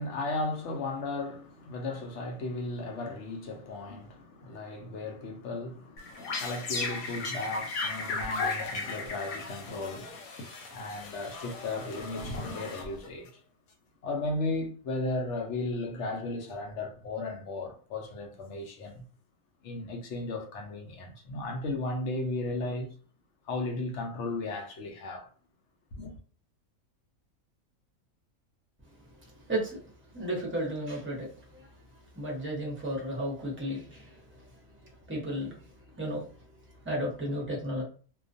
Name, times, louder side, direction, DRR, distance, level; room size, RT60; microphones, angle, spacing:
voice 1, 0.0-10.3 10.7-13.3 14.0-19.0 19.6-22.9 23.5-25.3 25.9-26.1, left 2 dB, 65° left, 0.8 m, -35 dB
sound 1, 6.0-13.3, left 3 dB, 85° left, 1.1 m, -36 dB
voice 2, 29.5-29.8 30.1-31.7 32.1-34.2 35.1-35.5 36.0-36.3 36.8-37.8, right 1 dB, 10° right, 0.6 m, -33 dB
2.4 x 2.2 x 2.5 m
omnidirectional pair, 1.5 m